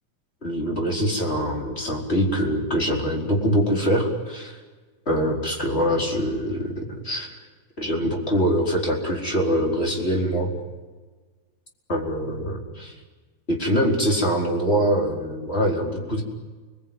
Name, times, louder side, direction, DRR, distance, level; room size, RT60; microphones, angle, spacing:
voice 1, 0.4-4.6 5.1-7.3 7.8-10.5 11.9-12.9 13.5-16.2, equal, 15° left, -1 dB, 4.8 m, -24 dB
30.0 x 21.5 x 9.2 m, 1.3 s
omnidirectional pair, 3.8 m